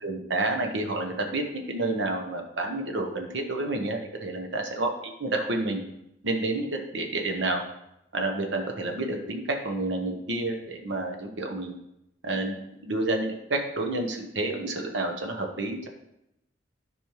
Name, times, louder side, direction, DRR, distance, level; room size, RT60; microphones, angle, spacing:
voice 1, 0.0-5.8 6.2-7.6 8.1-11.7 12.2-12.6 12.8-15.9, right 2 dB, 75° right, 2 dB, 1.0 m, -29 dB
10.5 x 5.3 x 3.1 m, 0.83 s
head